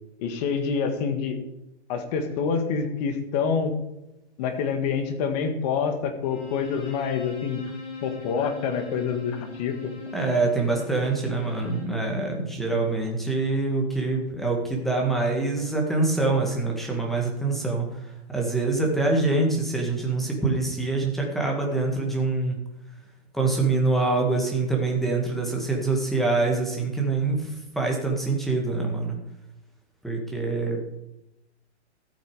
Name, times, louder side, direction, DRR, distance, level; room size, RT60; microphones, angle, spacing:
voice 1, 0.2-1.4 1.9-3.7 4.4-7.6 8.0-9.8, left 6 dB, 35° left, 7 dB, 1.8 m, -27 dB
Bowed string instrument, 6.2-12.0, left 4 dB, 70° left, 5.7 m, -40 dB
voice 2, 10.1-22.6 23.3-29.2 30.0-30.8, right 3 dB, ahead, 0 dB, 1.9 m, -25 dB
13.5 x 8.8 x 4.9 m, 0.90 s
hypercardioid pair, 155°, 35 cm